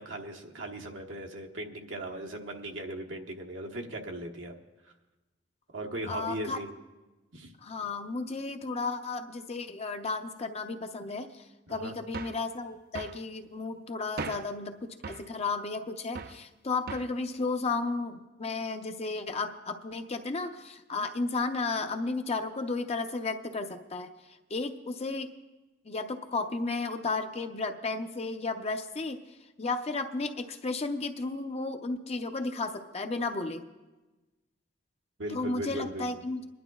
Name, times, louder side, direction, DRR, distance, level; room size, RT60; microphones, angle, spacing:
voice 1, 0.0-4.6 5.7-6.7 7.3-7.5 11.7-11.9 35.2-36.2, right 1 dB, 90° right, 1 dB, 1.2 m, -38 dB
voice 2, 6.1-6.6 7.6-11.4 11.7-24.1 24.5-25.3 25.8-29.2 29.6-33.6 35.3-36.4, left 3 dB, 35° left, 6 dB, 0.6 m, -33 dB
sound 1, 12.1-12.5 12.9-13.2 14.2-14.6 15.0-15.3 16.1-16.4 16.9-17.2, right 4 dB, 55° right, 0.4 m, -39 dB
26.5 x 11.0 x 2.3 m, 1.1 s
head